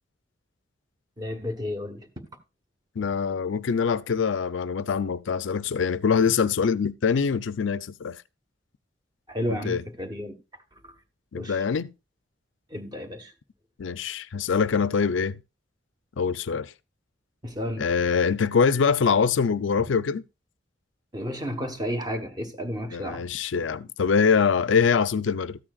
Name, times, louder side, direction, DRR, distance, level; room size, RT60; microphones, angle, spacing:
voice 1, 1.2-2.3 9.3-10.4 11.3-11.6 12.7-13.3 17.4-17.8 21.1-23.2, equal, 20° right, 1.2 m, -32 dB
voice 2, 3.0-8.2 9.5-9.8 11.3-11.9 13.8-15.4 16.2-16.7 17.8-20.2 22.9-25.6, left 6 dB, 75° left, 0.5 m, -24 dB
13.5 x 8.7 x 2.4 m
head